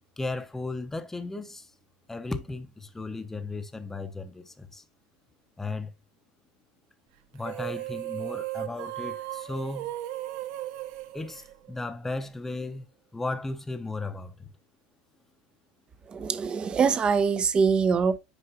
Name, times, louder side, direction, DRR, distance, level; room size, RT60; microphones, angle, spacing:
voice 1, 0.2-1.7 2.1-4.8 5.6-5.9 7.3-10.0 11.1-12.8 13.1-14.5, left 2 dB, 10° left, 0.9 m, -35 dB
sound 1, 7.4-12.1, right 15 dB, 60° right, 0.8 m, -36 dB
voice 2, 16.1-18.2, right 5 dB, 25° right, 0.7 m, -23 dB
8.0 x 4.7 x 3.0 m
supercardioid pair, 130°, 4 cm